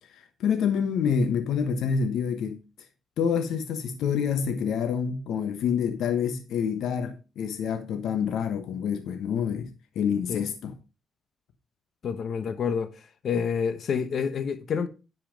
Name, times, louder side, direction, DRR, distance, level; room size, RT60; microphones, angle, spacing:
voice 1, 0.1-2.6 3.2-9.7 9.9-10.7, left 7 dB, 75° left, 1.3 m, -27 dB
voice 2, 12.0-12.9 13.2-14.9, left 6 dB, 55° left, 1.1 m, -28 dB
10.5 x 5.7 x 5.4 m
cardioid pair, 90°, 0 cm